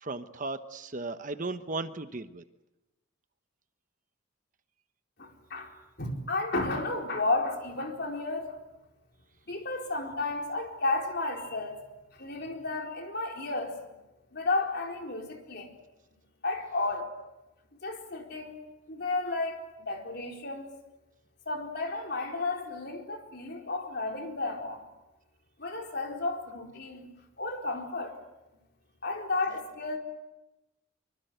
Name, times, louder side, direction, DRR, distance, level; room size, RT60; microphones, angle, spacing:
voice 1, 0.0-2.4, right 3 dB, 40° right, 10 dB, 1.1 m, -36 dB
voice 2, 5.2-5.7 6.0-8.6 9.5-11.8 12.2-13.8 14.3-15.7 16.4-17.1 17.8-18.6 18.9-20.7 21.5-24.8 25.6-27.1 27.4-28.2 29.0-30.0, left 2 dB, 50° left, 2 dB, 4.5 m, -32 dB
25.5 x 24.5 x 8.1 m, 0.99 s
head